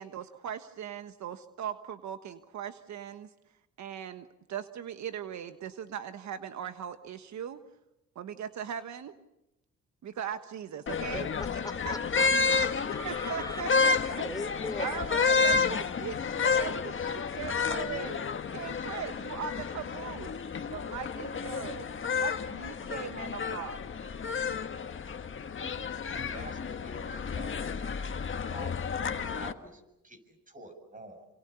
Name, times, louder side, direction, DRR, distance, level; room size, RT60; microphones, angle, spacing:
voice 1, 0.0-3.3 3.8-7.6 8.1-9.1 10.0-11.3 11.8-12.0 12.2-12.4 12.7-14.2 14.8-18.2 18.5-20.3 20.7-23.8, right 8 dB, 70° right, 9 dB, 1.3 m, -39 dB
sound 1, 10.9-29.5, left 5 dB, 40° left, 1.5 m, -31 dB
voice 2, 11.1-13.6 14.2-15.0, left 2 dB, 10° left, 6 dB, 4.7 m, -39 dB
voice 3, 26.1-31.3, right 1 dB, 25° right, 7 dB, 7.1 m, -49 dB
27.5 x 26.5 x 6.9 m, 0.90 s
cardioid pair, 90°, 30 cm